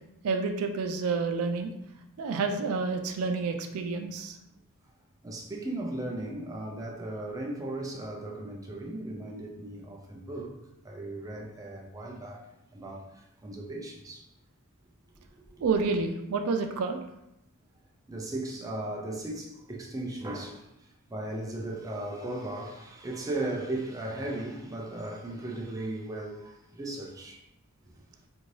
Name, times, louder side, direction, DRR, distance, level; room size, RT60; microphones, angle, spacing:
voice 1, 0.2-1.7 2.2-4.4 15.6-17.0, right 4 dB, 85° right, 0.4 m, -29 dB
voice 2, 5.2-10.5 10.8-12.5 12.7-14.3 15.6-15.7 18.1-20.7 21.1-27.4, right 1 dB, 15° right, 0.4 m, -36 dB
2.6 x 2.6 x 3.1 m
head